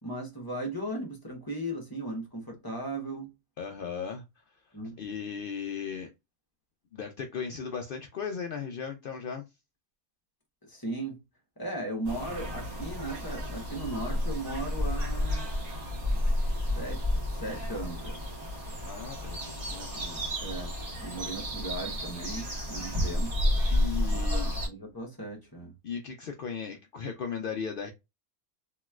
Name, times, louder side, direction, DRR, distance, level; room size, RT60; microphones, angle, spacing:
voice 1, 0.0-3.3 4.7-5.0 10.6-11.2 11.6-15.5 16.8-17.0 17.3-18.2 19.9-20.7 21.0-23.3 24.1-25.7, right 1 dB, 15° left, 0.9 m, -37 dB
voice 2, 3.6-4.2 5.0-6.1 6.9-9.4 18.8-19.9 23.7-24.5 25.8-27.9, left 6 dB, 85° left, 0.4 m, -36 dB
sound 1, 12.0-24.7, left 1 dB, 30° right, 1.0 m, -31 dB
3.0 x 2.9 x 2.2 m
omnidirectional pair, 1.5 m